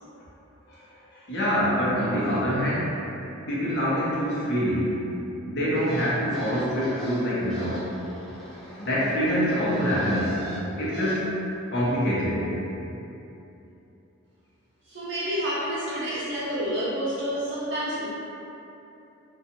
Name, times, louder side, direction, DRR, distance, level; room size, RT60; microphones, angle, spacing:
voice 1, 1.1-3.0 3.5-5.0 5.4-7.9 8.8-10.4 10.8-11.3 11.7-12.5, equal, 55° left, -8 dB, 0.7 m, -25 dB
sound 1, 5.7-11.2, left 1 dB, ahead, 0.4 m, -39 dB
voice 2, 14.9-18.1, equal, 55° right, -8 dB, 0.7 m, -29 dB
2.6 x 2.3 x 2.7 m, 2.9 s
head